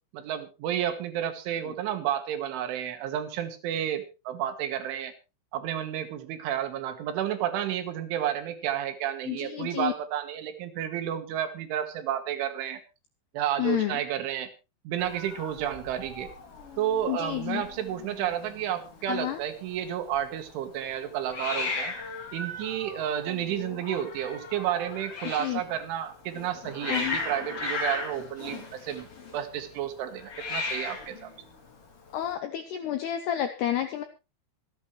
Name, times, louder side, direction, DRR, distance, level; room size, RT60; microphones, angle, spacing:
voice 1, 0.1-5.1 5.5-12.8 13.3-14.5 14.9-16.3 16.8-21.9 22.3-29.1 29.3-31.3, right 10 dB, 70° right, 8 dB, 3.6 m, -31 dB
voice 2, 9.3-9.9 13.6-14.0 17.1-17.6 19.1-19.4 25.4-25.6 26.9-27.2 32.1-34.0, left 12 dB, 80° left, 8 dB, 2.4 m, -30 dB
Hiss, 15.0-32.3, left 3 dB, 35° left, 3.0 m, -38 dB
25.5 x 8.9 x 3.2 m, 0.29 s
omnidirectional pair, 6.0 m